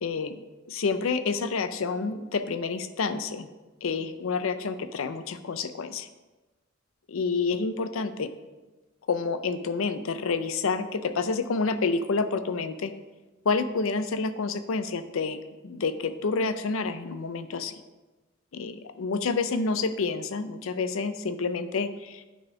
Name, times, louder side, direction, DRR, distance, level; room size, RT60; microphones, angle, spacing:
voice 1, 0.0-3.5 3.8-6.1 7.1-8.3 9.1-12.9 13.5-17.8 18.5-22.2, left 4 dB, 75° left, 11 dB, 0.5 m, -29 dB
9.1 x 4.1 x 4.9 m, 1.2 s
head